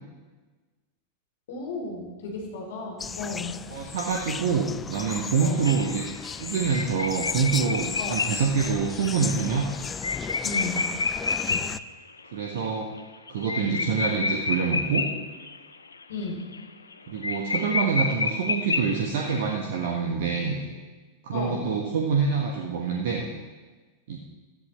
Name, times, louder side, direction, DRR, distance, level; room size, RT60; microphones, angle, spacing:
voice 1, 1.5-3.6 5.4-5.6 8.0-8.2 10.4-11.0 11.5-11.6 13.6-13.9 16.1-16.5 21.3-21.7, left 3 dB, 60° left, -2 dB, 3.6 m, -34 dB
sound 1, 3.0-11.8, left 6 dB, 20° left, 0.4 m, -35 dB
voice 2, 3.7-6.0 6.4-9.6 12.3-12.9 13.3-15.0 17.1-20.6 21.2-23.2 24.1-24.2, right 5 dB, 55° right, 0 dB, 1.4 m, -26 dB
sound 2, 5.6-11.8 12.2-12.3 12.6-12.7 13.0-15.6 15.9-16.2 16.5-16.6 16.9-17.0 17.2-19.3, left 4 dB, 75° left, 0.6 m, -29 dB
17.5 x 13.0 x 3.3 m, 1.3 s
figure-of-eight pair, 90°, 0 cm